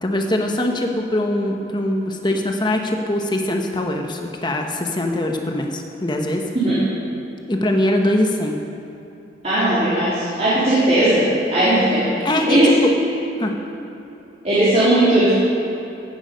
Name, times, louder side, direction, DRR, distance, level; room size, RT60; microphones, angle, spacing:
voice 1, 0.0-6.5 7.5-8.6 12.2-12.9 13.4-13.5, left 1 dB, 25° left, 3 dB, 1.1 m, -22 dB
voice 2, 9.4-11.2 11.5-12.7 14.4-15.3, right 1 dB, 35° right, -12 dB, 3.7 m, -17 dB
16.0 x 11.0 x 5.3 m, 3.0 s
head